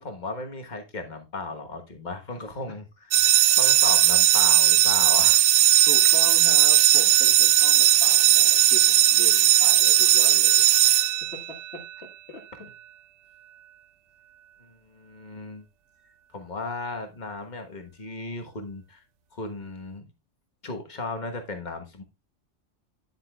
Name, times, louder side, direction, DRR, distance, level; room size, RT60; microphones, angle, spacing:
voice 1, 0.0-2.9 3.2-3.3 3.6-5.4 14.6-15.6 16.3-19.0 19.3-20.1 20.6-22.0, left 3 dB, 40° left, 1.4 m, -35 dB
sound 1, 3.1-11.8, right 13 dB, 75° right, 1.0 m, -18 dB
voice 2, 5.8-10.7 11.2-12.7, left 2 dB, 65° left, 1.8 m, -39 dB
9.7 x 8.0 x 2.3 m
omnidirectional pair, 1.2 m